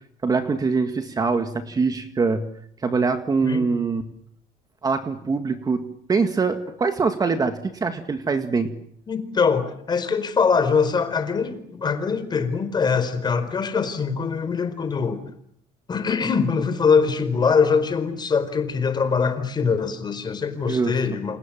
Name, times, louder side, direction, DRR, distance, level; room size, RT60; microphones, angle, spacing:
voice 1, 0.2-2.4 2.8-4.0 4.8-8.7 20.7-21.0, right 4 dB, 25° right, 8 dB, 2.0 m, -23 dB
voice 2, 9.1-15.2 15.9-21.4, left 5 dB, 25° left, 10 dB, 4.6 m, -23 dB
28.5 x 27.5 x 7.5 m, 0.68 s
cardioid pair, 140°, 16 cm